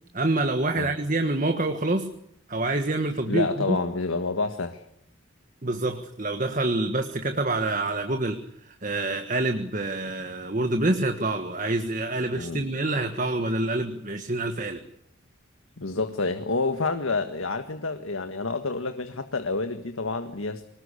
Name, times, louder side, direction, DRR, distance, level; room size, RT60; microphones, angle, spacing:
voice 1, 0.1-2.1 2.5-3.8 5.6-14.8, right 2 dB, 40° right, 7 dB, 1.6 m, -27 dB
voice 2, 3.3-4.8 12.3-12.6 15.8-20.7, left 3 dB, 85° left, 8 dB, 1.7 m, -28 dB
25.5 x 20.0 x 8.4 m, 0.72 s
head